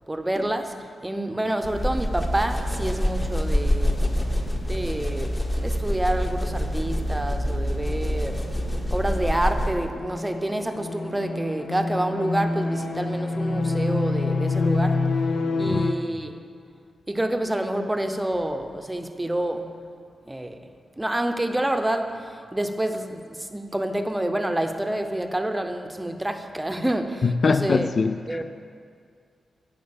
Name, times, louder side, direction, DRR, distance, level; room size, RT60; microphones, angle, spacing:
voice 1, 0.1-4.1 4.5-5.3 5.6-8.4 8.9-15.0 15.6-16.4 17.1-19.7 20.3-20.7 21.0-27.9 28.3-28.4, right 1 dB, 10° right, 7 dB, 0.8 m, -28 dB
sound 1, 1.6-9.9, equal, 20° left, 1.2 m, -26 dB
sound 2, 7.2-15.9, left 3 dB, 70° left, 1.0 m, -28 dB
voice 2, 27.2-28.4, left 4 dB, 40° left, 10 dB, 0.3 m, -23 dB
13.0 x 9.5 x 7.1 m, 2.2 s
wide cardioid pair, 150°, 0 cm